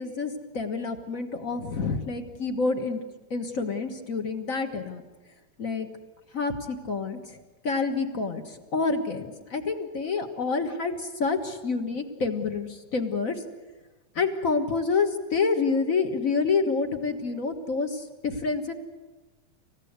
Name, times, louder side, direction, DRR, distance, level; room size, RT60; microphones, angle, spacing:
voice 1, 0.0-3.0 3.3-5.0 5.6-5.9 6.3-7.2 7.6-8.4 8.7-13.4 14.1-18.7, left 4 dB, 40° left, 7 dB, 1.2 m, -28 dB
28.5 x 16.0 x 8.2 m, 1.2 s
omnidirectional pair, 3.5 m